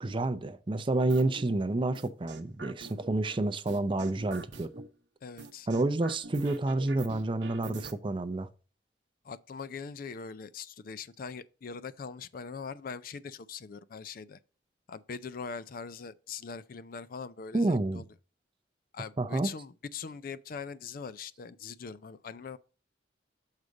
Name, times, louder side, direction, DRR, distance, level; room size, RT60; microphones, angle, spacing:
voice 1, 0.0-4.7 5.7-8.5 17.5-18.0 19.2-19.5, right 2 dB, 25° right, 0.5 m, -29 dB
sound 1, 1.1-1.4 1.9-3.4 3.7-4.9 5.4-7.9, right 3 dB, 70° right, 0.8 m, -45 dB
voice 2, 5.2-5.7 9.2-14.4 14.9-18.1 18.9-22.6, left 5 dB, 50° left, 0.4 m, -42 dB
6.5 x 4.9 x 3.9 m
head